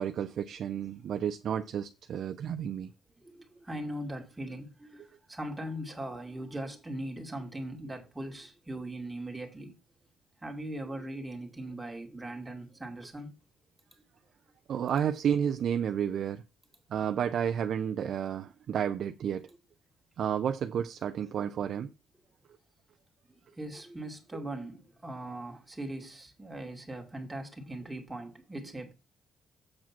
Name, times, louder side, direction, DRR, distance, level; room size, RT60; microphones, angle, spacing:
voice 1, 0.0-2.9 14.7-16.4 16.9-19.5 20.2-21.9 24.3-24.4, right 8 dB, 65° right, 0.5 m, -31 dB
voice 2, 3.2-9.7 10.4-13.3 23.6-28.9, right 1 dB, 10° right, 2.2 m, -40 dB
7.5 x 4.7 x 5.9 m
cardioid pair, 90°, 0 cm